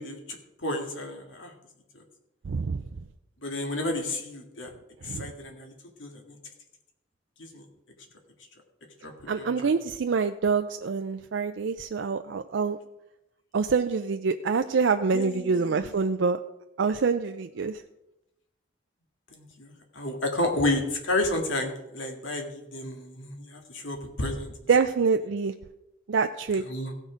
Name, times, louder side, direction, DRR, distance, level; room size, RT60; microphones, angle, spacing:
voice 1, 0.0-1.5 3.4-4.7 5.0-5.7 6.0-6.4 7.4-7.7 9.0-9.7 15.1-15.7 19.3-24.5 26.7-26.9, left 2 dB, 90° left, 3 dB, 2.0 m, -31 dB
voice 2, 2.4-2.8 5.0-5.3 9.3-12.8 13.5-16.4 16.8-17.8 24.7-25.5 26.1-26.6, right 5 dB, 75° right, 7 dB, 0.4 m, -26 dB
16.0 x 6.4 x 5.1 m, 0.92 s
head